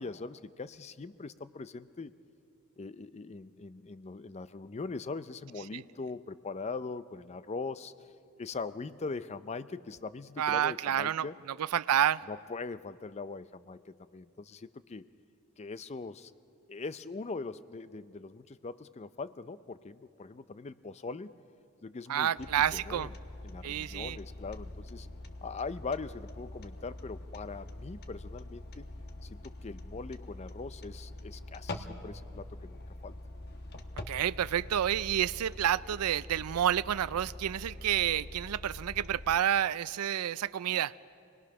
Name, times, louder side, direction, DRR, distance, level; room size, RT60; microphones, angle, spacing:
voice 1, 0.0-2.1 2.8-7.9 8.4-11.4 12.3-15.1 15.6-16.3 16.7-21.3 21.8-23.1 23.4-25.1 25.4-28.8 29.2-33.1, left 4 dB, 30° left, 0.4 m, -41 dB
voice 2, 10.4-11.3 11.7-12.2 22.1-23.1 23.6-24.2 34.1-40.9, right 10 dB, 80° right, 0.4 m, -29 dB
sound 1, 22.4-39.4, left 1 dB, 45° left, 1.1 m, -45 dB
26.5 x 20.0 x 6.0 m
head